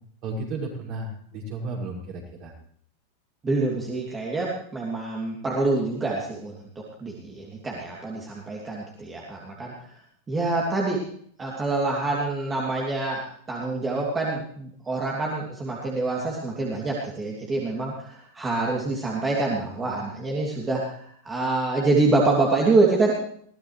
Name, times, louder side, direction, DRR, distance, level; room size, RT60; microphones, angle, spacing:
voice 1, 0.2-2.5, right 2 dB, 40° right, -1 dB, 6.4 m, -33 dB
voice 2, 3.4-9.9 10.3-11.0 11.4-23.1, right 3 dB, 15° right, -3 dB, 2.9 m, -26 dB
22.0 x 16.5 x 3.3 m, 0.63 s
figure-of-eight pair, 90°, 0 cm